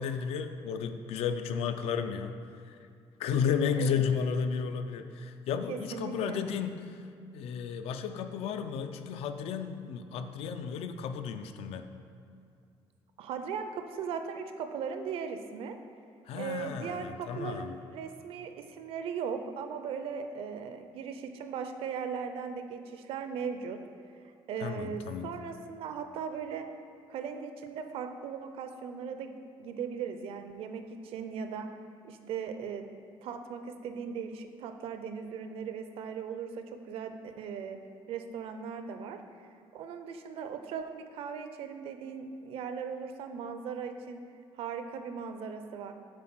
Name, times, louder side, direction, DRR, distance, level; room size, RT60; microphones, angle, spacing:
voice 1, 0.0-2.4 2.7-2.8 3.2-6.9 7.3-11.9 16.3-17.8 24.6-25.3, left 6 dB, 80° left, 8 dB, 0.5 m, -33 dB
voice 2, 5.7-6.4 13.2-15.8 16.3-23.8 24.5-26.7 27.1-29.3 29.6-31.7 32.0-32.9 33.2-37.8 38.1-39.2 39.7-44.2 44.6-45.9, right 6 dB, 70° right, 7 dB, 0.5 m, -38 dB
7.5 x 3.8 x 6.0 m, 2.4 s
cardioid pair, 170°, 10 cm